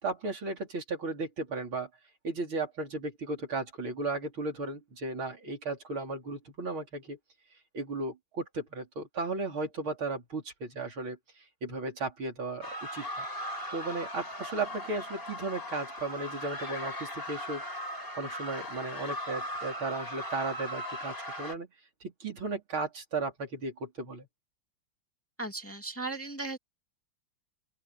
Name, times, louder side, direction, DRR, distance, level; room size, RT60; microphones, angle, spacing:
voice 1, 0.0-1.9 2.2-7.2 7.7-11.2 11.6-13.3 13.7-17.6 17.9-21.7 22.0-24.3, right 3 dB, 85° right, 4.8 m, -35 dB
sound 1, 12.6-21.6, equal, 25° left, 5.1 m, -38 dB
voice 2, 25.4-26.6, right 2 dB, 5° left, 2.3 m, -36 dB
open air
omnidirectional pair, 2.2 m